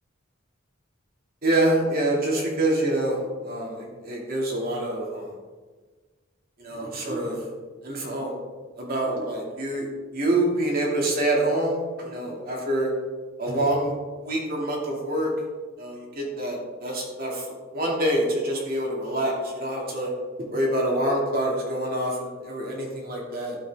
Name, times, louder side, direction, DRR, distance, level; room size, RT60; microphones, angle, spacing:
voice 1, 1.4-3.2 3.4-5.3 6.6-7.4 7.8-8.3 8.8-9.9 10.1-12.9 13.4-13.9 14.2-15.3 15.8-17.5 17.7-20.1 20.5-23.6, right 1 dB, 50° right, -2 dB, 2.6 m, -26 dB
12.0 x 7.9 x 3.6 m, 1.4 s
head